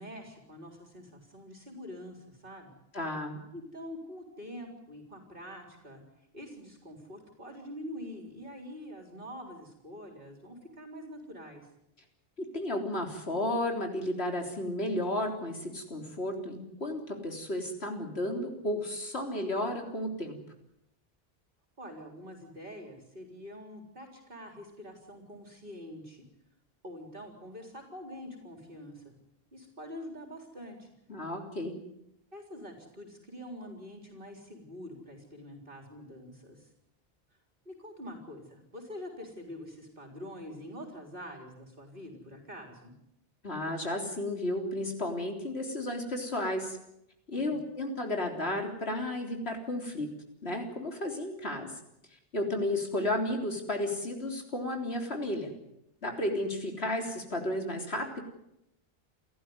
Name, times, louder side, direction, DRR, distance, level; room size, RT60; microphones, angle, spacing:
voice 1, 0.0-2.7 3.5-6.0 6.3-11.7 21.8-26.3 26.8-29.1 29.5-30.9 32.3-36.7 37.7-42.9 47.3-47.6, equal, 60° right, 3 dB, 4.2 m, -45 dB
voice 2, 2.9-3.4 12.4-20.4 31.1-31.7 43.4-46.8 47.3-50.1 50.4-51.7 52.3-55.5 56.0-58.2, left 1 dB, 90° left, 3 dB, 4.0 m, -33 dB
30.0 x 14.0 x 9.6 m, 0.82 s
omnidirectional pair, 1.0 m